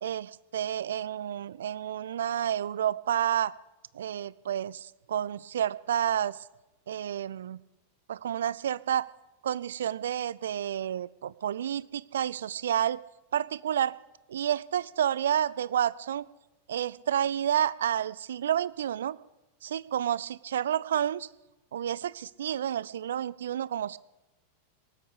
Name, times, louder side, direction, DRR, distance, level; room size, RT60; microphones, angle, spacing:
voice 1, 0.0-3.5 3.9-6.4 6.9-7.6 8.1-9.1 9.4-13.0 13.3-14.0 14.3-16.3 16.7-19.2 19.6-21.3 21.7-24.0, right 10 dB, 65° right, 20 dB, 0.4 m, -30 dB
18.5 x 8.3 x 8.2 m, 1.0 s
figure-of-eight pair, 90°, 0 cm